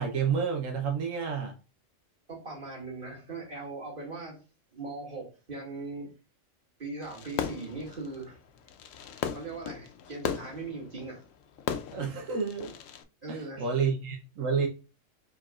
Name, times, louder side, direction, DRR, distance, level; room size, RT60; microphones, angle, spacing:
voice 1, 0.0-1.6 11.9-12.7 13.3-14.7, right 6 dB, 90° right, 1.3 m, -29 dB
voice 2, 2.3-4.4 4.7-6.1 6.8-8.4 9.3-11.2 13.2-13.9, right 3 dB, 45° right, 2.5 m, -40 dB
Fireworks, 7.0-13.0, left 8 dB, 90° left, 1.0 m, -38 dB
4.7 x 4.0 x 2.4 m
omnidirectional pair, 1.3 m